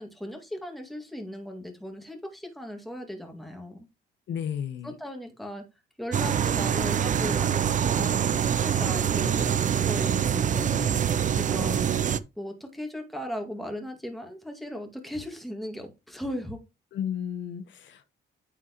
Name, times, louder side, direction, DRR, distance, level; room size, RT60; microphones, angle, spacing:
voice 1, 0.0-3.9 4.8-5.6 6.0-8.2 8.4-10.8 11.3-11.9 12.4-16.6, left 1 dB, ahead, 2.1 m, -37 dB
voice 2, 4.3-4.9 16.9-18.0, left 8 dB, 70° left, 1.0 m, -33 dB
sound 1, 6.1-12.2, right 8 dB, 40° right, 0.5 m, -25 dB
9.0 x 6.2 x 3.0 m
cardioid pair, 90°, 20 cm